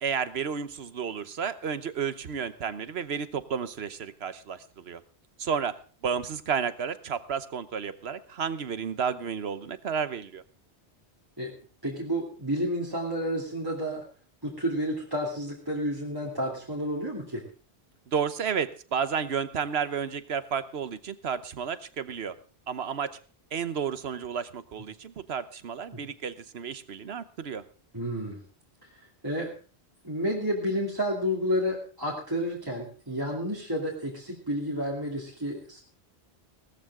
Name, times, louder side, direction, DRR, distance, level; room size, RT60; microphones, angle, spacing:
voice 1, 0.0-5.0 5.4-10.4 18.1-22.4 22.7-23.2 23.5-27.6, right 7 dB, 70° right, 13 dB, 1.2 m, -32 dB
voice 2, 11.8-14.0 14.4-17.4 25.9-26.0 27.9-28.4 29.2-29.5 30.0-35.8, equal, 20° right, -3 dB, 2.8 m, -30 dB
18.0 x 14.0 x 3.7 m, 0.39 s
omnidirectional pair, 1.1 m